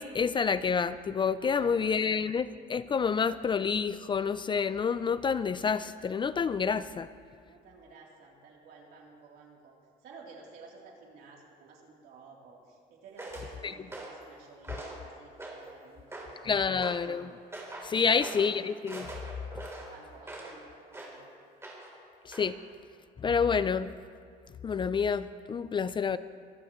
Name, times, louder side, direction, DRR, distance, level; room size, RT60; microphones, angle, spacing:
voice 1, 0.0-7.1 13.6-13.7 16.4-17.3 17.8-19.1 22.3-22.5 23.2-23.9 24.6-26.2, left 6 dB, 30° left, 15 dB, 0.4 m, -28 dB
voice 2, 1.4-2.2 7.4-9.7 10.0-16.8 17.9-18.4 19.8-21.3, right 4 dB, 70° right, -2 dB, 3.4 m, -53 dB
sound 1, 13.2-13.5 13.9-14.2 14.6-15.0 15.4-15.7 16.1-16.4 16.8-17.1 17.5-17.9 18.2-18.5 18.9-20.6 20.9-21.2 21.6-22.0 22.3-22.5, right 2 dB, 15° right, 3.5 m, -42 dB
24.5 x 14.5 x 3.1 m, 2.1 s
cardioid pair, 110°, 17 cm